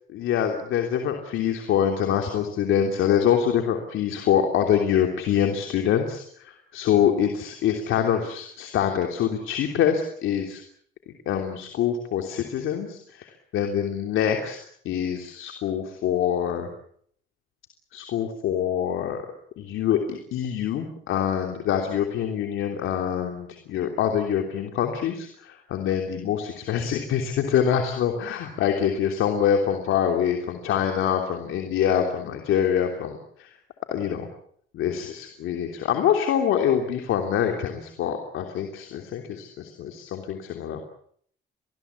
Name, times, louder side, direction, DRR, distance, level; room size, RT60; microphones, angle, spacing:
voice 1, 0.1-10.6 11.2-14.6 14.8-16.7 17.9-19.2 19.6-33.5 33.9-34.3 34.7-40.8, left 9 dB, 85° left, 3 dB, 3.2 m, -25 dB
26.5 x 20.5 x 8.3 m, 0.65 s
cardioid pair, 90°, 20 cm